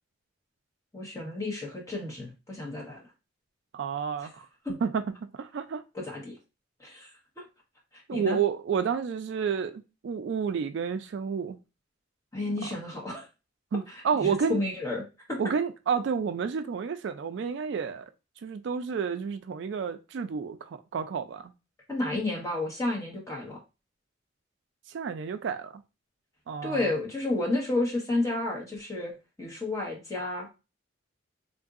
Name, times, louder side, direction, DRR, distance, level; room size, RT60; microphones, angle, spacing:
voice 1, 0.9-3.0 5.9-6.4 6.8-7.1 7.4-7.5 8.1-8.4 12.3-13.3 13.9-15.0 15.3-15.4 21.9-23.6 26.6-29.1 29.4-30.5, left 2 dB, 15° left, 1.1 m, -31 dB
voice 2, 3.7-4.5 4.8-5.1 5.3-5.8 8.1-11.6 12.6-12.7 13.7-14.6 15.4-18.1 18.4-21.5 24.9-25.8 26.5-26.9, right 6 dB, 65° right, 0.3 m, -30 dB
3.8 x 2.6 x 2.4 m
head